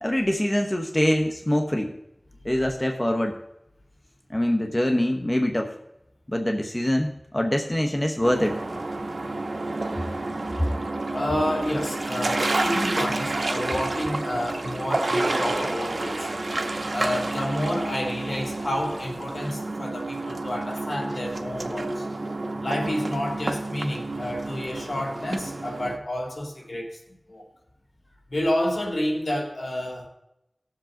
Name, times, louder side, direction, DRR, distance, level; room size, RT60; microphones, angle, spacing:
voice 1, 0.0-1.9 2.4-3.4 4.3-5.8 6.3-8.6, left 1 dB, 25° left, 3 dB, 1.0 m, -24 dB
sound 1, 8.2-26.0, right 2 dB, 80° right, 1.0 m, -29 dB
voice 2, 11.1-16.3 16.9-22.1 22.6-27.0 27.3-27.5 28.3-30.1, left 1 dB, 70° left, 0 dB, 2.8 m, -29 dB
18.0 x 7.7 x 3.8 m, 0.84 s
wide cardioid pair, 55°, 0 cm